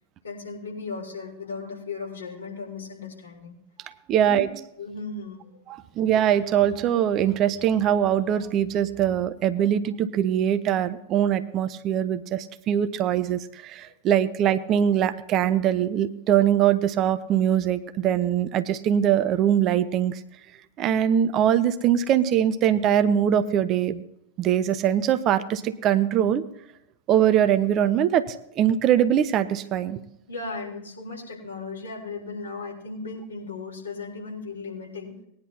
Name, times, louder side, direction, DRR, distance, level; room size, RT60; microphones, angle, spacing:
voice 1, 0.2-3.6 4.1-4.5 4.8-5.6 13.9-14.0 30.3-35.1, left 4 dB, 75° left, -3 dB, 3.8 m, -36 dB
voice 2, 4.1-4.5 5.7-20.2 20.8-24.0 24.4-26.4 27.1-30.0, right 10 dB, 35° right, 12 dB, 0.7 m, -22 dB
19.0 x 10.5 x 2.8 m, 0.77 s
figure-of-eight pair, 90°, 0 cm